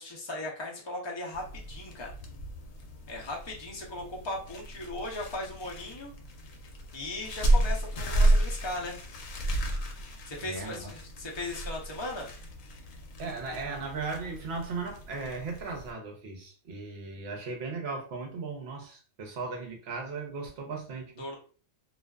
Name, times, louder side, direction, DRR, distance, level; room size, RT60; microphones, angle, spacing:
voice 1, 0.0-2.1 3.1-6.1 6.9-9.0 10.3-12.3 21.2-21.3, left 2 dB, 35° left, -2 dB, 0.4 m, -37 dB
sound 1, 1.3-15.9, right 1 dB, 80° left, 1.0 m, -32 dB
voice 2, 10.4-10.9 13.2-21.2, right 4 dB, 60° right, 1 dB, 0.9 m, -37 dB
2.5 x 2.3 x 2.2 m, 0.40 s
omnidirectional pair, 1.4 m